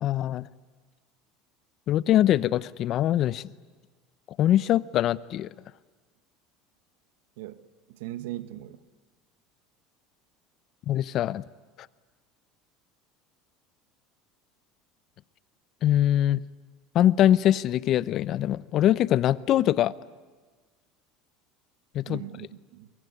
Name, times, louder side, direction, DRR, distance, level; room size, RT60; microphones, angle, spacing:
voice 1, 0.0-0.5 1.9-3.4 4.4-5.5 10.9-11.4 15.8-16.4 16.9-19.9 21.9-22.2, left 12 dB, 50° left, 0.7 m, -23 dB
voice 2, 7.9-8.8 22.1-22.9, right 15 dB, 80° right, 1.3 m, -39 dB
24.0 x 22.5 x 9.6 m
supercardioid pair, 95°, 0 cm